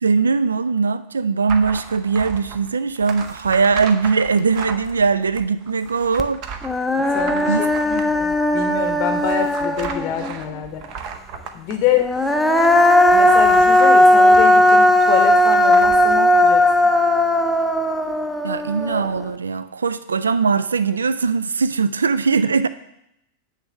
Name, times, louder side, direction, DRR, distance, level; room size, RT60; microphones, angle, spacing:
voice 1, 0.0-6.4 7.5-8.0 18.4-22.7, right 5 dB, 75° right, 14 dB, 0.3 m, -20 dB
sound 1, 1.5-16.4, right 6 dB, 40° right, 0.8 m, -36 dB
Human voice, 6.2-6.3 6.6-10.3 12.0-19.2, left 1 dB, ahead, 0.6 m, -16 dB
voice 2, 7.1-7.6 7.8-10.8 11.5-12.1 13.1-16.6, left 10 dB, 40° left, 6 dB, 0.8 m, -25 dB
9.9 x 3.3 x 6.5 m, 0.82 s
figure-of-eight pair, 90°, 0 cm